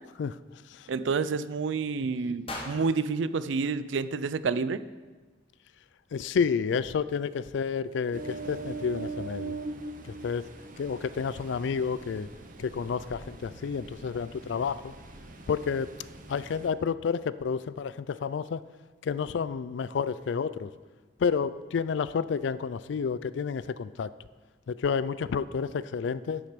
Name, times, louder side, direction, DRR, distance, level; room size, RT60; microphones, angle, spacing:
voice 1, 0.9-4.8, right 4 dB, 70° right, 15 dB, 0.4 m, -29 dB
sound 1, 2.5-4.6, left 2 dB, 30° left, 1.3 m, -43 dB
voice 2, 6.1-9.6 10.0-10.5 10.8-12.3 12.6-14.9 15.5-15.9 16.3-18.6 19.0-20.7 21.2-24.1 24.7-26.4, left 6 dB, 65° left, 17 dB, 0.3 m, -30 dB
Ocean, 8.1-16.7, right 3 dB, 45° right, 0.8 m, -42 dB
10.0 x 6.5 x 5.1 m, 1.3 s
head